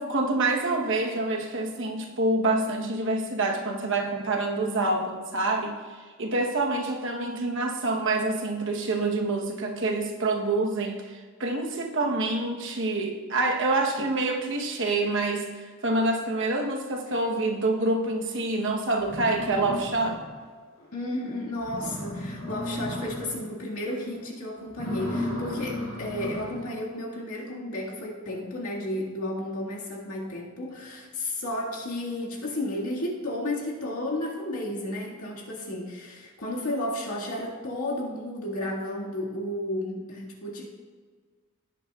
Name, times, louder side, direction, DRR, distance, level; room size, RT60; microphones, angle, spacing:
voice 1, 0.0-5.8 6.2-15.5 15.8-20.2, right 2 dB, 55° right, 2 dB, 1.1 m, -27 dB
sound 1, 18.6-18.7 19.0-20.4 20.8-20.9 21.3-21.4 21.6-23.5 23.9-24.2 24.7-26.7, left 1 dB, 60° left, 3.0 m, -34 dB
voice 2, 20.9-40.7, left 1 dB, 75° left, -3 dB, 2.0 m, -33 dB
17.0 x 8.4 x 2.4 m, 1.5 s
head